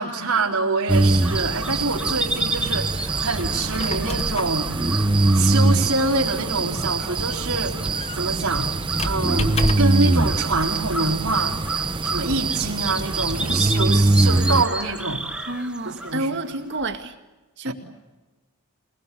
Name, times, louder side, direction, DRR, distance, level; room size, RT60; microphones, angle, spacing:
voice 1, 0.0-4.7 5.3-8.7 9.0-11.6 12.0-15.2 15.9-16.3 17.6-17.7, right 3 dB, 75° right, -1 dB, 4.0 m, -25 dB
sound 1, 0.9-16.9, right 1 dB, 5° right, 2.0 m, -33 dB
sound 2, 0.9-14.6, right 2 dB, 20° right, 0.8 m, -22 dB
Squeak, 3.5-10.1, left 2 dB, 25° left, 1.1 m, -32 dB
voice 2, 15.5-17.2 17.6-17.7, right 2 dB, 50° right, 6 dB, 2.1 m, -29 dB
28.0 x 20.0 x 8.4 m, 1.1 s
head